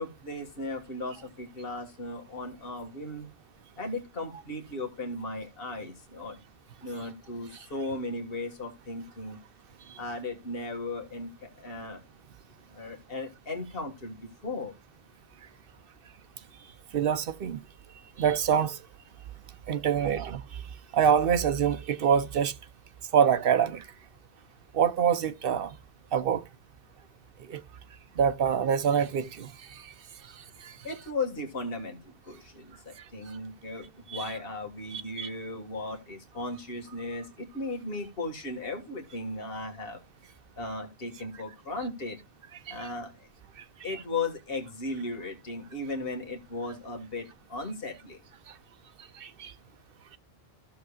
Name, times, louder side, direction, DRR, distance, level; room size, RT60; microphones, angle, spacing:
voice 1, 0.0-3.3 3.8-6.4 6.8-9.4 10.0-12.0 12.7-14.7 30.8-40.0 40.6-42.2 42.7-43.3 43.8-48.2, left 2 dB, 65° left, 1.9 m, -36 dB
voice 2, 16.9-17.6 18.2-18.8 19.7-20.4 20.9-22.5 23.1-23.8 24.7-25.7 26.1-26.4 27.5-27.6 28.2-29.5 29.8-29.9 30.6-30.7 34.1-34.2 34.9-35.3 42.7-42.9 49.2-49.5, right 7 dB, 65° right, 0.9 m, -25 dB
14.5 x 7.0 x 2.3 m
omnidirectional pair, 1.0 m